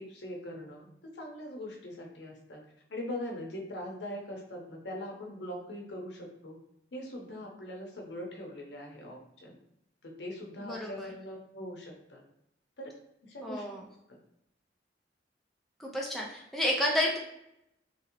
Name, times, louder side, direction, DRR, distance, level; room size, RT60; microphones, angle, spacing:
voice 1, 0.0-2.6 2.9-6.6 6.9-9.6 10.0-12.2 12.8-12.9 13.2-13.6, left 1 dB, 75° left, 0 dB, 0.7 m, -41 dB
voice 2, 10.7-11.1 13.4-13.8 15.8-17.2, left 1 dB, ahead, -3 dB, 0.4 m, -30 dB
2.9 x 2.7 x 2.8 m, 0.80 s
head